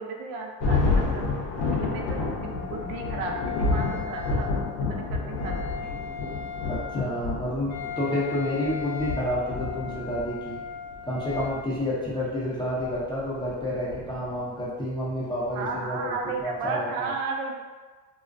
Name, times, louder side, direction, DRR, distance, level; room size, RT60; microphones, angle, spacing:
voice 1, 0.0-1.4 1.8-4.5 4.8-5.7 15.5-17.5, right 3 dB, 70° right, 1 dB, 0.6 m, -34 dB
Thunder, 0.6-14.6, left 3 dB, 85° left, 0.8 m, -30 dB
Wind instrument woodwind instrument, 1.6-11.6, left 7 dB, 45° left, 0.7 m, -38 dB
voice 2, 6.7-10.6 11.1-16.1 16.4-17.1, left 1 dB, 10° left, -9 dB, 0.4 m, -29 dB
2.4 x 2.1 x 2.4 m, 1.4 s
supercardioid pair, 105°, 49 cm